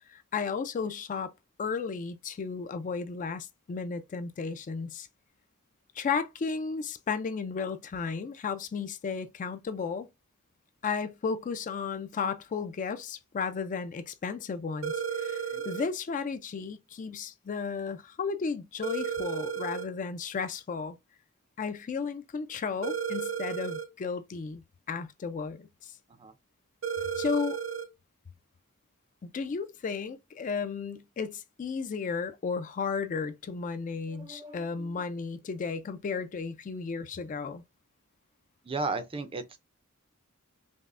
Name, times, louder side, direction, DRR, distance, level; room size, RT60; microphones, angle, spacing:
voice 1, 0.0-1.3 1.6-5.1 6.0-10.1 10.8-21.0 21.6-24.6 24.9-25.9 27.2-27.6 29.3-37.6, left 5 dB, 35° left, 0.3 m, -34 dB
sound 1, 14.8-15.9 18.8-19.9 22.8-23.9 26.8-27.9, right 7 dB, 65° right, 0.8 m, -33 dB
voice 2, 34.1-34.9 38.6-39.6, right 3 dB, 25° right, 0.4 m, -35 dB
5.3 x 2.0 x 2.4 m
head